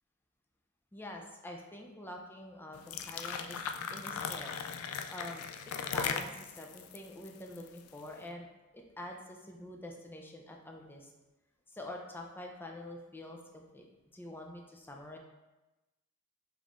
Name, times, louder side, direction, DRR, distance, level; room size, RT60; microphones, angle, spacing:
voice 1, 0.9-3.6 3.9-4.6 5.1-5.4 5.9-8.5 8.7-11.1 11.7-13.8 14.1-15.2, left 1 dB, 10° left, 1 dB, 0.4 m, -46 dB
sound 1, 2.7-8.0, left 7 dB, 85° left, 0.3 m, -38 dB
5.2 x 3.1 x 2.5 m, 1.1 s
head